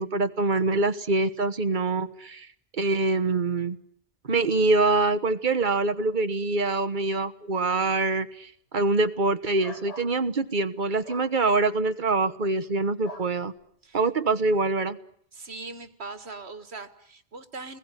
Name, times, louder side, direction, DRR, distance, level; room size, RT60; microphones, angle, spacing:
voice 1, 0.0-2.5 2.8-3.8 4.2-13.5 13.9-15.0, right 3 dB, 50° right, 10 dB, 1.4 m, -25 dB
sound 1, 9.6-10.1 11.0-11.3 13.0-13.3, left 1 dB, 35° left, 2.6 m, -42 dB
voice 2, 15.3-17.8, right 3 dB, 85° right, 11 dB, 2.1 m, -40 dB
28.5 x 21.0 x 9.9 m, 0.65 s
omnidirectional pair, 1.1 m